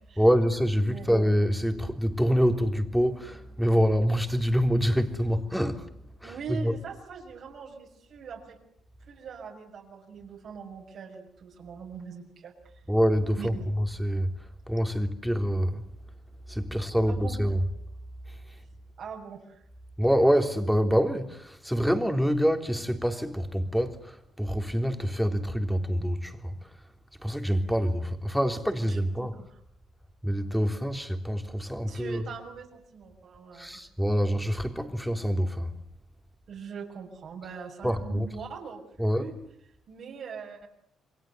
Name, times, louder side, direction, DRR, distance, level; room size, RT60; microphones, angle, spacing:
voice 1, 0.2-5.9 6.2-6.8 12.9-15.8 16.5-17.6 18.3-18.4 20.0-26.7 27.2-29.4 30.2-32.3 33.5-35.8 37.8-38.3 39.0-39.3, equal, ahead, 3.5 m, -26 dB
voice 2, 6.2-8.6 9.1-12.5 13.4-13.6 17.1-17.4 19.0-19.6 28.9-29.5 31.9-33.8 36.5-39.3 39.9-40.7, right 6 dB, 65° right, 6.3 m, -42 dB
28.5 x 23.0 x 8.0 m
cardioid pair, 90°, 0 cm